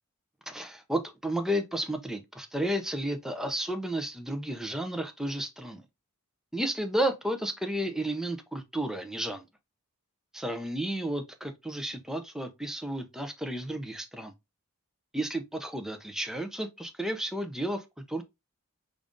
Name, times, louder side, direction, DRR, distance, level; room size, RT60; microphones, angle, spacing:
voice 1, 0.5-5.8 6.5-9.4 10.3-14.3 15.1-18.2, right 1 dB, ahead, 0.5 m, -32 dB
5.1 x 2.5 x 3.5 m
head